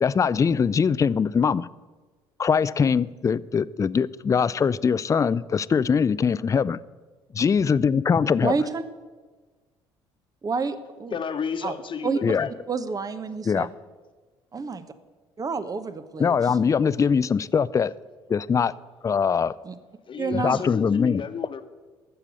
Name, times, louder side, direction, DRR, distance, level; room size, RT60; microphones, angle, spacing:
voice 1, 0.0-1.7 2.4-6.8 7.3-8.5 12.2-12.5 13.5-13.7 16.2-17.9 18.3-18.7 19.0-19.5 20.3-21.2, left 6 dB, 25° left, 18 dB, 0.4 m, -22 dB
voice 2, 8.4-8.8 10.4-11.1 11.6-11.7 12.0-12.4 12.7-13.7 14.5-14.8 15.4-16.6 19.6-19.8 20.2-20.7, right 4 dB, 30° right, 12 dB, 0.9 m, -29 dB
voice 3, 11.1-12.5 20.1-21.6, left 6 dB, 40° left, 9 dB, 1.2 m, -32 dB
13.0 x 7.0 x 8.4 m, 1.3 s
hypercardioid pair, 60°, 12 cm